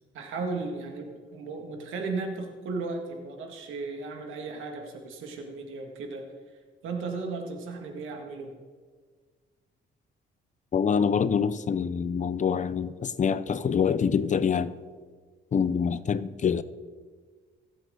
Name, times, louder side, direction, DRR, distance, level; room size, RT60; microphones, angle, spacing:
voice 1, 0.1-6.3 6.8-8.5, right 3 dB, 85° right, 2.1 m, -35 dB
voice 2, 10.7-14.7 15.5-16.6, left 6 dB, 40° left, 0.7 m, -25 dB
23.0 x 8.0 x 3.9 m
cardioid pair, 90°, 20 cm